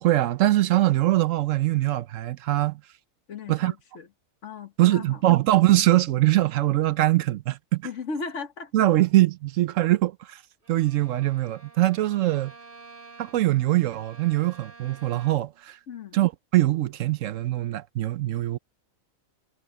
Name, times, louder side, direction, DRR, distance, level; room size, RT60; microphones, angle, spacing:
voice 1, 0.0-2.8 3.5-3.7 4.8-7.9 8.7-10.4 10.7-12.5 13.2-15.8 16.1-18.6, right 15 dB, 70° right, 1.0 m, -22 dB
voice 2, 3.3-4.1 4.4-5.2 7.8-8.7 15.9-16.2, left 4 dB, 60° left, 1.5 m, -36 dB
Bowed string instrument, 10.6-15.6, right 3 dB, 40° right, 2.1 m, -50 dB
omnidirectional pair, 1.4 m